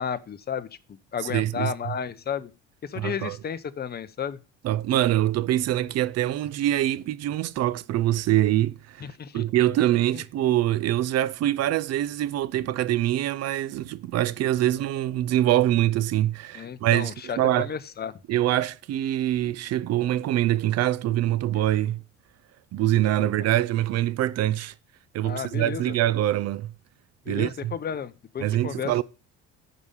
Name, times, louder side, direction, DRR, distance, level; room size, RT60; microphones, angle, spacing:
voice 1, 0.0-2.5 2.8-4.4 9.0-9.4 16.5-18.1 23.2-23.3 25.2-25.9 27.3-29.0, left 7 dB, 30° left, 0.8 m, -33 dB
voice 2, 1.3-1.7 3.0-3.4 4.6-9.1 9.3-17.7 18.3-22.0 22.7-24.7 25.1-26.7 27.3-27.7 28.4-29.0, right 13 dB, 55° right, 0.5 m, -24 dB
9.6 x 5.2 x 5.6 m
cardioid pair, 115°, 32 cm